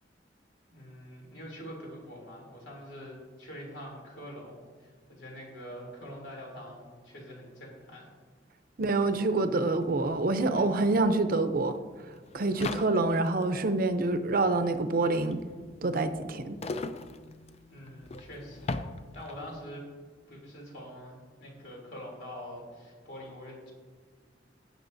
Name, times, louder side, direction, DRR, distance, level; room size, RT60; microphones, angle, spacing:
voice 1, 0.7-8.1 17.7-18.8 19.1-19.8 20.3-23.7, equal, 85° left, -2 dB, 3.0 m, -45 dB
sound 1, 8.8-8.9 9.1-19.6, left 3 dB, 35° left, 0.5 m, -41 dB
voice 2, 8.8-11.8 12.3-15.4 15.8-16.6, right 2 dB, 50° right, 9 dB, 0.6 m, -26 dB
17.0 x 6.4 x 2.7 m, 1.5 s
head